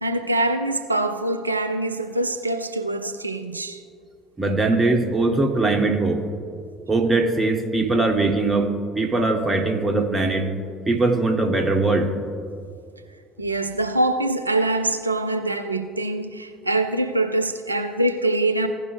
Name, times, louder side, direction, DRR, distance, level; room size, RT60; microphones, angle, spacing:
voice 1, 0.0-3.8 13.4-18.7, right 2 dB, 90° right, 0.3 m, -24 dB
voice 2, 4.4-6.2 6.9-8.7 8.9-10.5 10.9-12.1, right 2 dB, 20° right, 1.3 m, -21 dB
15.5 x 5.2 x 3.3 m
figure-of-eight pair, 60°, 0 cm